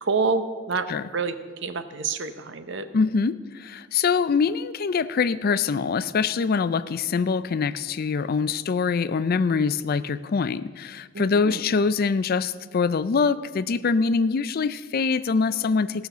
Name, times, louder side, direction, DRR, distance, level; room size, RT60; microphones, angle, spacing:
voice 1, 0.0-0.9 1.1-1.3 1.6-2.9 11.1-11.6, right 4 dB, 60° right, 10 dB, 0.8 m, -27 dB
voice 2, 2.9-16.1, left 5 dB, 50° left, 15 dB, 0.4 m, -24 dB
16.5 x 6.4 x 6.9 m, 1.5 s
head